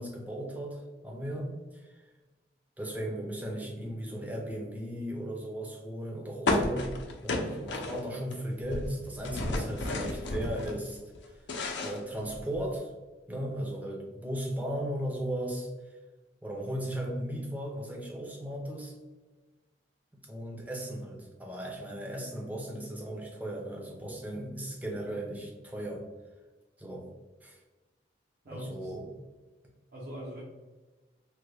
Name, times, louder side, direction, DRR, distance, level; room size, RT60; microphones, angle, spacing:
voice 1, 0.0-2.0 2.8-6.9 7.2-11.0 11.3-11.4 11.8-12.9 13.3-16.0 16.4-18.9 20.3-26.0 26.8-27.1 27.4-27.6 28.5-29.1, right 1 dB, 10° right, -1 dB, 0.5 m, -36 dB
sound 1, 6.5-8.3 8.6-10.8 11.2-12.7, left 2 dB, 85° left, 0.5 m, -32 dB
voice 2, 28.4-28.9 29.9-30.4, equal, 55° right, -5 dB, 0.7 m, -42 dB
3.4 x 2.2 x 3.2 m, 1.2 s
head